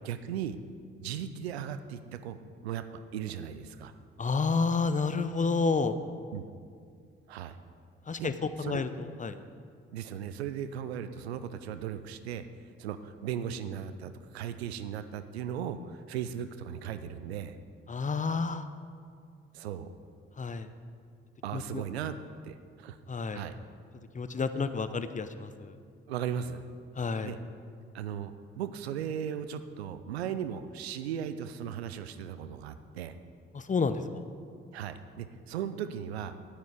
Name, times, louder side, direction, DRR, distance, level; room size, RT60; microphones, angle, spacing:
voice 1, 0.0-0.6 1.0-2.4 2.6-2.8 3.1-3.9 6.3-6.4 7.3-7.5 8.2-8.3 8.6-8.8 9.9-12.4 12.8-17.6 19.5-19.9 21.4-22.2 22.4-23.0 23.3-23.6 26.1-26.6 27.2-27.4 27.9-33.1 34.7-36.4, right 9 dB, 90° right, 11 dB, 0.5 m, -37 dB
voice 2, 4.2-5.9 8.1-8.3 8.6-9.4 17.9-18.6 20.4-20.7 21.5-21.8 23.1-23.5 24.1-25.7 27.0-27.3 33.5-34.2, left 4 dB, 25° left, 11 dB, 0.7 m, -30 dB
10.5 x 9.2 x 5.0 m, 2.2 s
hypercardioid pair, 40°, 31 cm